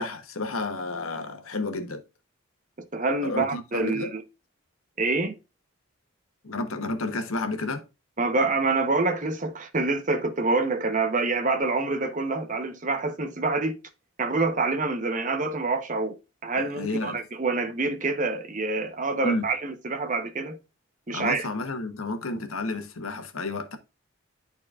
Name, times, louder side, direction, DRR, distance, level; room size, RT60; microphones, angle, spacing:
voice 1, 0.0-2.0 3.2-4.1 6.4-7.8 16.8-17.2 19.2-19.5 21.1-23.8, left 2 dB, 85° left, 1.2 m, -31 dB
voice 2, 2.9-4.2 5.0-5.3 8.2-13.7 14.2-16.2 16.4-20.6 21.1-21.5, right 3 dB, 35° right, 0.9 m, -26 dB
11.0 x 4.3 x 2.4 m
head